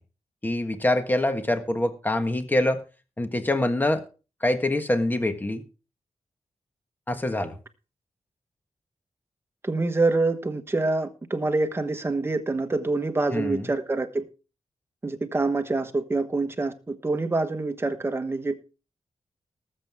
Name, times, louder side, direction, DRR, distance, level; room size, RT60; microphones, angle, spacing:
voice 1, 0.4-2.8 3.2-4.0 4.4-5.6 7.1-7.6 13.3-13.7, left 1 dB, 15° left, 1.5 m, -25 dB
voice 2, 9.6-14.2 15.0-18.5, right 3 dB, 20° right, 1.3 m, -26 dB
19.5 x 7.8 x 3.6 m
wide cardioid pair, 145°, 12 cm